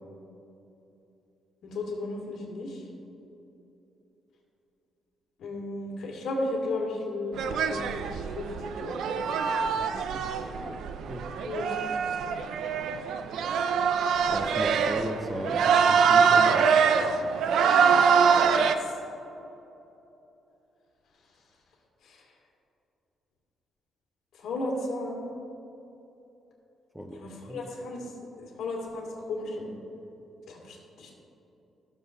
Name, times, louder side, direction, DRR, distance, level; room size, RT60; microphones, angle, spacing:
voice 1, 1.6-2.8 5.4-8.5 8.8-9.2 11.4-11.7 18.6-18.8 22.0-22.2 24.4-25.2 27.1-28.0 28.4-29.7 30.5-31.1, left 2 dB, 70° left, -2 dB, 2.3 m, -34 dB
sound 1, 7.4-18.8, right 6 dB, 75° right, 0.5 m, -24 dB
voice 2, 9.7-10.2 10.6-10.8 11.1-11.3 14.3-16.7 26.9-27.2 27.5-27.6, equal, 5° right, 3 dB, 0.6 m, -36 dB
16.0 x 7.0 x 2.7 m, 3.0 s
cardioid pair, 150°, 0 cm